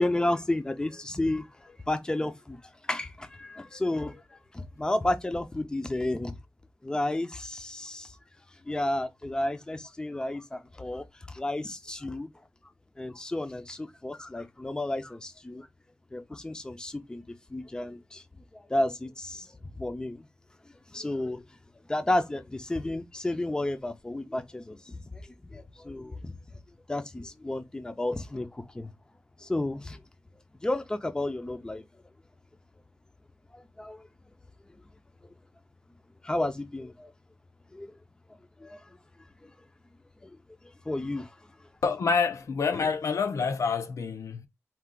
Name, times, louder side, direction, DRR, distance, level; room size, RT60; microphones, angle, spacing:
voice 1, 0.0-2.6 2.9-6.4 6.8-8.2 8.7-12.3 13.0-15.7 16.1-17.2 17.5-18.2 18.5-20.3 20.9-21.4 21.9-25.2 25.5-26.3 26.9-28.9 29.4-30.0 30.6-31.8 33.5-34.1 35.2-35.3 36.2-37.1 37.7-37.9 38.6-39.0 39.4-39.5 40.2-40.4 40.9-41.4, left 1 dB, 15° left, 0.6 m, -32 dB
voice 2, 41.8-44.5, left 5 dB, 85° left, 0.7 m, -27 dB
4.5 x 2.4 x 3.7 m
wide cardioid pair, 130°, 5 cm